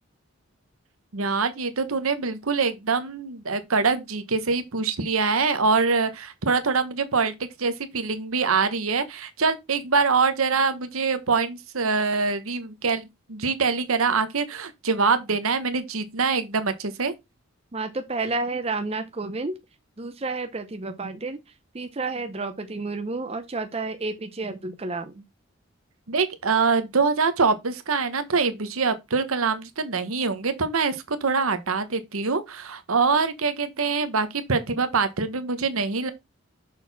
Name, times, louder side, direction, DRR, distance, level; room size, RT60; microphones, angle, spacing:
voice 1, 1.1-17.1 26.1-36.1, right 4 dB, 85° right, 1.0 m, -24 dB
voice 2, 17.7-19.5 20.0-21.4 21.7-25.2, right 3 dB, 30° right, 0.6 m, -30 dB
6.5 x 4.1 x 4.0 m
head